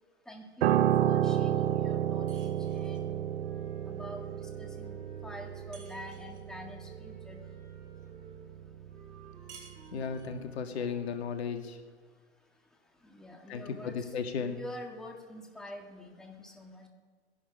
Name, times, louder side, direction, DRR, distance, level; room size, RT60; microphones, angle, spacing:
voice 1, 0.3-3.1 3.9-7.4 13.0-14.1 14.4-16.9, left 1 dB, ahead, 1 dB, 1.6 m, -46 dB
Piano, 0.6-10.0 10.3-10.5, right 11 dB, 60° right, 0.7 m, -31 dB
sound 1, 2.3-3.1 5.7-6.5 9.5-10.4, right 5 dB, 85° right, 2.5 m, -55 dB
Wind instrument woodwind instrument, 3.4-6.3 6.8-11.7, right 3 dB, 25° right, 3.1 m, -58 dB
voice 2, 9.9-11.8 13.5-14.6, left 6 dB, 65° left, 6 dB, 1.9 m, -35 dB
21.5 x 11.0 x 5.0 m, 1.5 s
hypercardioid pair, 120°, 34 cm